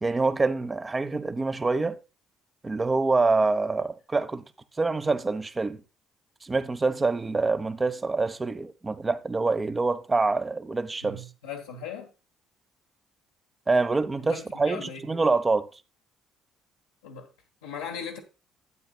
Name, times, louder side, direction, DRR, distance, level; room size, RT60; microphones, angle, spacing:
voice 1, 0.0-2.0 2.6-4.4 4.8-5.8 6.4-11.2 13.7-15.7, right 3 dB, 25° right, 1.0 m, -26 dB
voice 2, 11.0-12.1 14.2-15.0 17.0-17.3 17.6-18.2, left 6 dB, 85° left, 1.2 m, -38 dB
12.5 x 9.0 x 2.3 m
hypercardioid pair, 50°, 0 cm